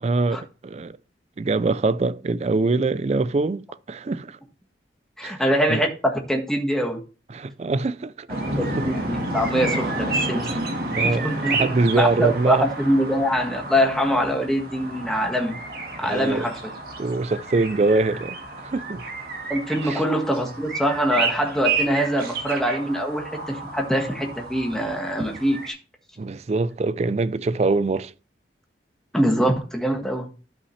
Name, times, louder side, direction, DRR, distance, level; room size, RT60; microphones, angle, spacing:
voice 1, 0.0-1.0 1.4-4.4 5.2-5.3 5.7-5.8 7.3-8.3 8.6-8.9 10.9-12.7 16.0-16.5 17.0-19.0 19.8-20.0 26.2-28.1, right 3 dB, 35° right, 0.4 m, -24 dB
voice 2, 5.2-7.0 8.6-10.6 11.0-11.7 11.9-15.5 16.0-16.6 19.5-25.8 29.1-30.3, equal, 5° left, 1.5 m, -23 dB
sound 1, 8.3-25.7, right 3 dB, 55° right, 1.7 m, -30 dB
12.0 x 5.6 x 3.2 m
head